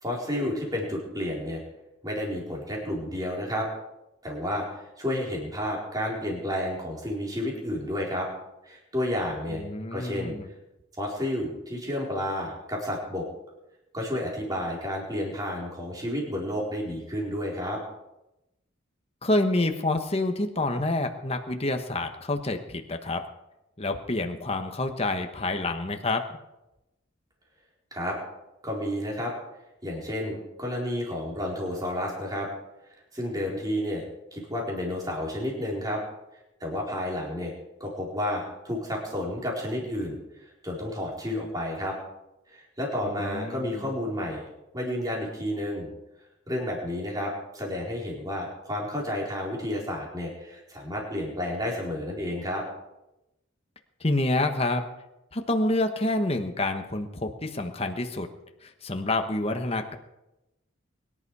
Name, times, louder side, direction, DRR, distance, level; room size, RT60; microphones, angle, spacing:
voice 1, 0.0-1.6 2.0-3.7 4.2-8.3 8.6-9.6 9.9-10.4 11.0-13.2 13.9-17.8 27.9-28.2 28.6-29.3 29.8-32.5 33.1-34.0 34.3-36.0 36.6-37.5 37.8-40.2 40.6-41.9 42.5-44.4 44.7-45.9 46.5-52.6, left 1 dB, 20° right, -2 dB, 4.3 m, -31 dB
voice 2, 9.6-10.5 19.2-23.2 23.8-26.2 43.0-43.8 54.0-54.9 55.3-58.3 58.6-59.9, left 2 dB, 30° left, 5 dB, 1.2 m, -28 dB
23.5 x 11.0 x 4.8 m, 0.94 s
head